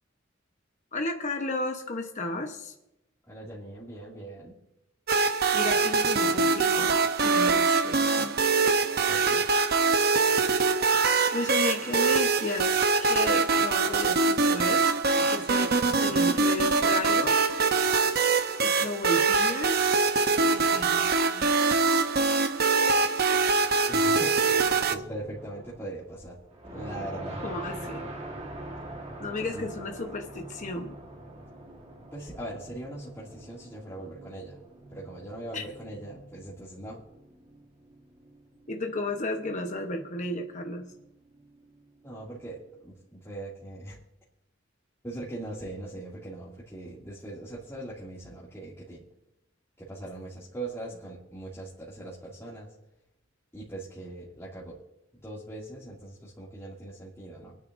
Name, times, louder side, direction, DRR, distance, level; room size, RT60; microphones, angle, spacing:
voice 1, 0.9-2.7 5.5-8.4 11.3-14.8 15.2-17.4 18.6-19.8 20.3-21.5 27.4-28.1 29.2-31.0 35.5-35.6 38.7-40.9, left 2 dB, 40° left, 3 dB, 1.0 m, -33 dB
voice 2, 3.3-4.5 9.1-9.5 22.8-23.4 23.8-26.4 26.6-27.4 29.4-29.7 32.1-34.6 34.9-37.0 42.0-44.0 45.0-49.1 49.8-52.7 53.5-54.8 55.1-57.6, right 1 dB, 15° left, -8 dB, 2.3 m, -41 dB
sound 1, 5.1-25.0, right 4 dB, 55° right, 0.8 m, -23 dB
sound 2, 24.4-26.0 26.4-42.8, right 1 dB, 35° right, 1.5 m, -45 dB
28.0 x 9.4 x 2.6 m, 0.90 s
head